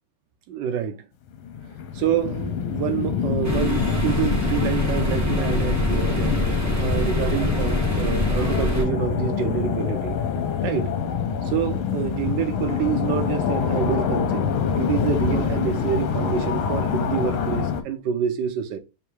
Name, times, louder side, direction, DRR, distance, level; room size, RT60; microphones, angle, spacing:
voice 1, 0.5-1.0 2.0-10.2 10.6-10.9 11.4-14.5 14.8-18.8, right 9 dB, 70° right, 1.1 m, -27 dB
sound 1, 1.3-17.8, left 7 dB, 75° left, 1.4 m, -25 dB
sound 2, 3.4-8.8, equal, 20° right, 0.4 m, -25 dB
3.6 x 2.6 x 4.5 m
omnidirectional pair, 2.4 m